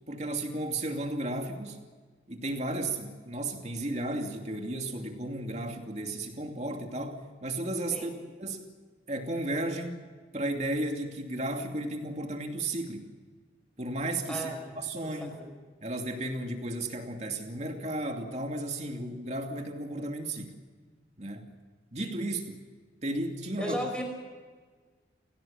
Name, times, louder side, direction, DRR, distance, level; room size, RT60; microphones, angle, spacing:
voice 1, 0.1-1.8 2.3-8.1 8.4-8.7 9.1-10.0 10.3-13.1 13.8-15.4 15.8-20.6 21.2-21.5 21.9-22.6 23.0-23.8, right 1 dB, 40° right, 3 dB, 2.7 m, -34 dB
voice 2, 14.3-14.7 15.0-15.5 23.6-24.0, equal, 5° left, 3 dB, 5.5 m, -35 dB
29.5 x 17.5 x 7.3 m, 1.5 s
head